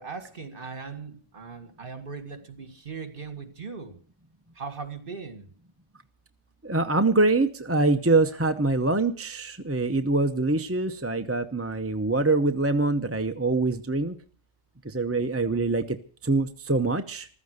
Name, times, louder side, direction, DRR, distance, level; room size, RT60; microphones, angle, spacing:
voice 1, 0.0-4.0 4.6-5.5, right 5 dB, 45° right, 9 dB, 2.1 m, -39 dB
voice 2, 6.6-14.2 14.8-16.0 16.2-17.3, right 3 dB, 15° right, 7 dB, 0.6 m, -24 dB
15.0 x 13.5 x 6.6 m, 0.43 s
omnidirectional pair, 1.2 m